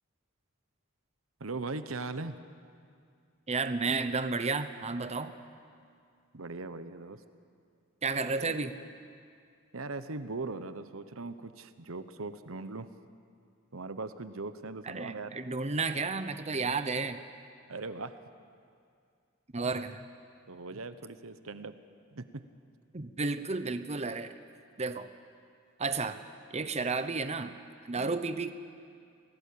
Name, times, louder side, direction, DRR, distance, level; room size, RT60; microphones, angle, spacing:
voice 1, 1.4-2.4 6.3-7.2 8.4-8.5 9.7-12.9 13.7-15.3 17.7-18.1 20.5-21.7 22.1-22.4 27.9-28.2, right 3 dB, 80° right, 11 dB, 1.1 m, -39 dB
voice 2, 3.5-5.3 8.0-8.7 14.8-17.2 19.5-20.1 22.9-24.3 24.8-25.1 25.8-26.2 26.5-27.6 27.9-28.5, right 4 dB, 30° right, 9 dB, 0.9 m, -32 dB
29.0 x 18.5 x 8.7 m, 2.3 s
head